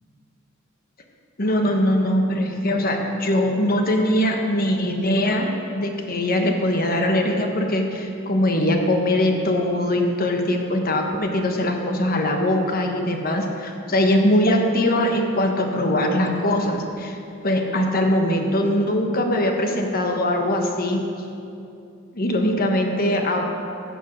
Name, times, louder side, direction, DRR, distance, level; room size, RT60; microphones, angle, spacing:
voice 1, 1.4-5.5 5.7-17.2 17.4-21.0 22.1-23.5, left 1 dB, 45° left, 3 dB, 1.2 m, -21 dB
16.0 x 5.5 x 6.1 m, 2.6 s
head